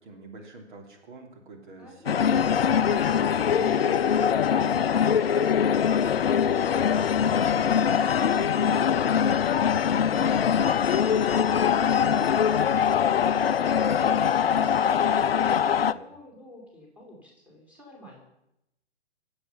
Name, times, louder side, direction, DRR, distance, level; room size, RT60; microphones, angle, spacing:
voice 1, 0.0-2.4 2.8-9.1 15.8-16.1, right 3 dB, 45° right, 2 dB, 3.3 m, -46 dB
voice 2, 1.8-2.5 2.9-3.5 7.4-8.7 9.6-18.2, equal, 5° right, -2 dB, 4.9 m, -48 dB
sound 1, 2.1-15.9, left 8 dB, 60° left, 0.7 m, -23 dB
25.5 x 8.8 x 5.8 m, 0.85 s
figure-of-eight pair, 120°, 34 cm